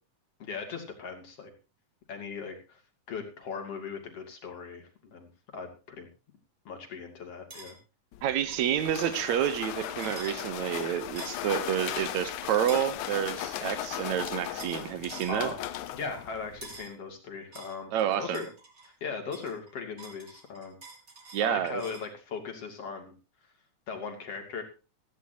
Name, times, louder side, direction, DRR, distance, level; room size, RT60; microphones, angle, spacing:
voice 1, 0.4-1.5 2.1-2.8 3.1-6.1 6.7-7.8 15.3-15.6 15.9-17.9 18.2-18.5 18.9-20.8 21.4-23.1 23.9-24.6, left 5 dB, 55° left, 3.7 m, -38 dB
sound 1, 7.5-7.7 8.5-8.7 10.0-10.3 11.2-11.5 12.7-12.9 14.6-14.8 15.1-15.4 16.6-16.9 17.5-18.9 19.3-22.1, right 3 dB, 30° right, 3.5 m, -47 dB
sound 2, 8.1-16.9, left 13 dB, 80° left, 2.3 m, -37 dB
voice 2, 8.2-15.5 17.9-18.4 21.3-21.8, right 10 dB, 75° right, 2.2 m, -29 dB
16.5 x 14.5 x 2.9 m
omnidirectional pair, 3.4 m